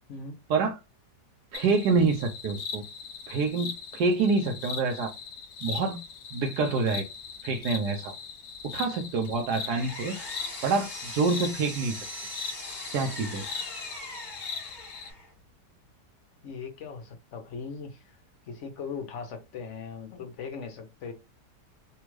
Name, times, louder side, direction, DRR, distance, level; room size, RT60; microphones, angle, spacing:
sound 1, 1.5-15.1, left 5 dB, 85° left, 1.2 m, -40 dB
voice 1, 1.5-2.8 3.3-5.1 5.6-6.0 6.3-7.1 7.4-8.2 8.6-10.2 10.6-12.0 12.9-13.5, right 4 dB, 75° right, 1.2 m, -27 dB
Power tool, 9.2-15.3, left 1 dB, 30° left, 1.5 m, -41 dB
voice 2, 16.4-18.2 18.5-21.1, left 5 dB, 55° left, 0.9 m, -39 dB
3.4 x 2.3 x 3.1 m
omnidirectional pair, 1.8 m